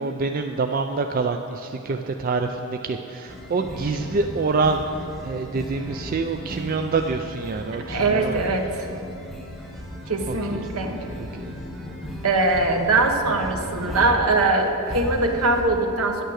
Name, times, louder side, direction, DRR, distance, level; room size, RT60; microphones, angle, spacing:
voice 1, 0.0-8.4 10.3-10.7 11.1-11.6, right 4 dB, 40° right, 5 dB, 0.4 m, -26 dB
sound 1, 3.3-15.6, equal, ahead, 1.3 m, -36 dB
voice 2, 7.9-8.9 10.1-11.0 12.2-16.2, right 2 dB, 75° right, 4 dB, 1.2 m, -22 dB
11.0 x 9.1 x 6.4 m, 2.7 s
head